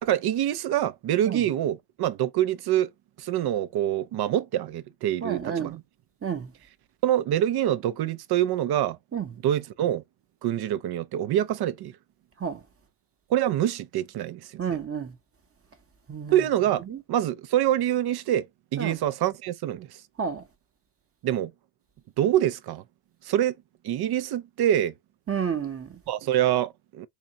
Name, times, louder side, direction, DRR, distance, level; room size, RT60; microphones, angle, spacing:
voice 1, 0.0-2.9 3.2-5.8 7.0-9.0 9.4-10.0 10.4-11.9 13.3-14.8 16.3-18.5 18.7-19.9 21.2-21.5 22.2-22.8 23.3-23.5 23.8-24.9 26.1-27.1, right 11 dB, 55° right, 0.6 m, -25 dB
voice 2, 5.2-5.8 6.2-6.5 9.1-9.3 12.4-12.6 14.6-15.1 16.1-16.4 16.9-17.0 18.8-19.0 20.2-20.4 25.3-26.0, right 7 dB, 30° right, 0.9 m, -30 dB
3.7 x 2.8 x 2.8 m
supercardioid pair, 75°, 46 cm